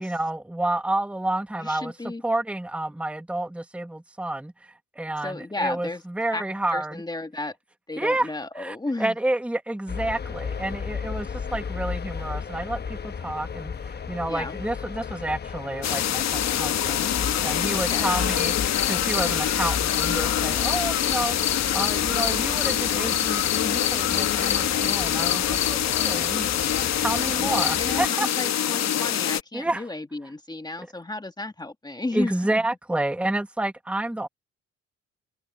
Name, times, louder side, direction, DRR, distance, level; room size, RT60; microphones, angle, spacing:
voice 1, 0.0-4.5 5.0-7.0 8.0-8.3 8.6-26.5 26.7-28.3 29.5-29.8 32.1-34.3, right 1 dB, 5° right, 1.2 m, -29 dB
voice 2, 1.6-2.2 5.2-6.0 6.3-6.4 6.7-7.6 7.9-9.2 14.2-14.6 17.7-18.2 27.4-32.7, left 2 dB, 15° left, 2.1 m, -33 dB
sound 1, 9.9-28.1, left 6 dB, 35° left, 1.0 m, -34 dB
sound 2, 15.8-29.4, left 10 dB, 60° left, 1.2 m, -25 dB
cardioid pair, 90°, 30 cm